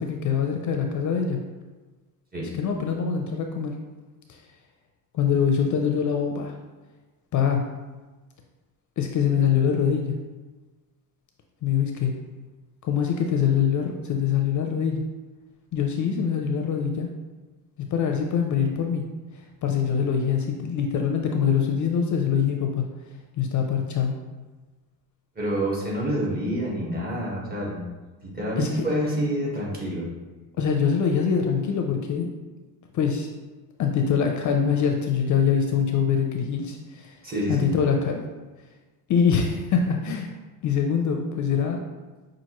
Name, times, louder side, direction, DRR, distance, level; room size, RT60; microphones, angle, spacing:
voice 1, 0.0-1.4 2.6-3.7 4.3-4.4 5.1-6.5 7.3-7.6 9.0-10.2 11.6-12.1 12.8-15.0 15.7-17.1 17.9-19.0 19.6-22.9 23.4-24.2 28.6-28.9 30.6-32.3 32.9-33.3 33.8-37.2 37.5-38.2 39.1-40.3 40.6-41.8, left 7 dB, 50° left, 3 dB, 0.5 m, -24 dB
voice 2, 25.3-27.8 28.2-30.1 37.2-37.7, equal, 25° right, -4 dB, 1.2 m, -27 dB
5.6 x 2.5 x 3.0 m, 1.2 s
cardioid pair, 105°, 40 cm